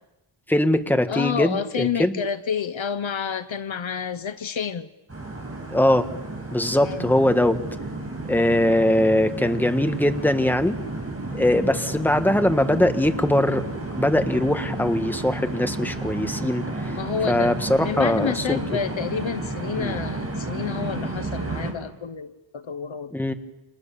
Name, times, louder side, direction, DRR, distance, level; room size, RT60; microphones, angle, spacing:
voice 1, 0.5-2.2 5.7-6.1 6.5-7.6 8.3-10.8 11.3-13.6 14.0-16.9 17.3-18.6 19.8-19.9 23.1-23.3, left 1 dB, 5° left, 7 dB, 1.6 m, -21 dB
voice 2, 1.1-4.9 6.8-7.1 17.0-23.1, left 7 dB, 65° left, 13 dB, 1.2 m, -29 dB
sound 1, 5.1-21.7, right 2 dB, 30° right, 6.9 m, -32 dB
29.0 x 28.0 x 7.1 m, 0.99 s
wide cardioid pair, 130°, 50 cm